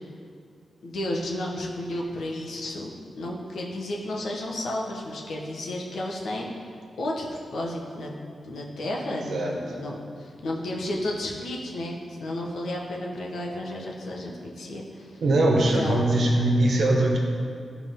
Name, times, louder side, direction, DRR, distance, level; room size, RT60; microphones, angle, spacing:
voice 1, 0.8-2.9 3.2-6.7 7.0-8.1 8.4-15.2 15.5-16.0, left 1 dB, 80° left, -2 dB, 1.2 m, -32 dB
voice 2, 9.3-9.8 15.2-17.2, right 1 dB, 70° right, -1 dB, 1.4 m, -22 dB
11.5 x 4.9 x 3.7 m, 2.3 s
wide cardioid pair, 100°, 0 cm